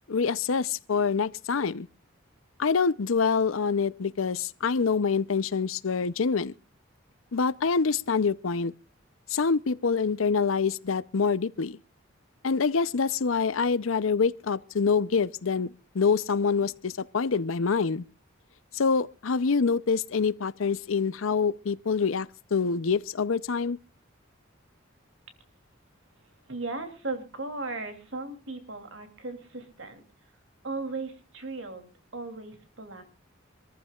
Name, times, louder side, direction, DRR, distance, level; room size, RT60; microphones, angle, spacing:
voice 1, 0.1-1.9 2.6-6.5 7.3-8.7 9.3-11.8 12.4-18.0 18.7-23.8, left 5 dB, 85° left, 0.6 m, -26 dB
voice 2, 26.2-30.0 30.6-33.0, right 3 dB, 65° right, 2.9 m, -37 dB
26.0 x 14.5 x 2.4 m
head